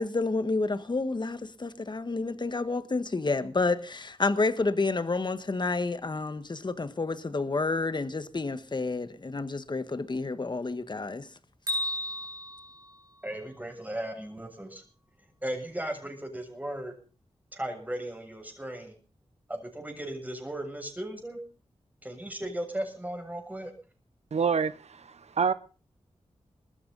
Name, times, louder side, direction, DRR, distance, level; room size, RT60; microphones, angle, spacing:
voice 1, 0.0-11.3, left 3 dB, 40° left, 1.5 m, -29 dB
Bell, 11.7-13.7, left 1 dB, 30° right, 7.4 m, -35 dB
voice 2, 13.2-14.8 15.4-17.0 17.5-18.9 19.5-21.4 22.0-23.7, right 1 dB, 15° right, 7.2 m, -36 dB
voice 3, 24.3-25.5, right 6 dB, 70° right, 0.8 m, -27 dB
21.5 x 14.0 x 4.1 m
cardioid pair, 65°, 11 cm